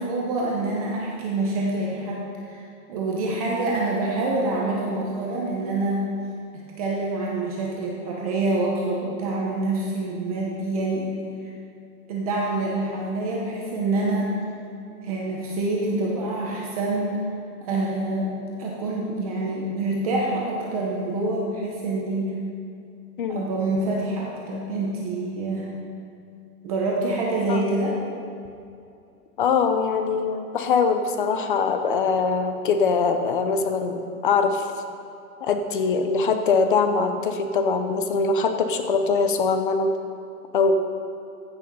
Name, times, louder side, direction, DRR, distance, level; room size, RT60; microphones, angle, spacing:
voice 1, 0.0-2.6 2.9-6.1 6.8-11.1 12.1-14.3 15.0-17.2 17.6-18.3 18.6-22.4 23.3-25.7 26.6-28.0, right 2 dB, 25° right, -3 dB, 0.9 m, -26 dB
voice 2, 29.4-34.7 35.4-39.9 40.5-40.7, left 4 dB, 35° left, 7 dB, 0.6 m, -22 dB
15.0 x 6.4 x 5.3 m, 2.6 s
hypercardioid pair, 175°, 46 cm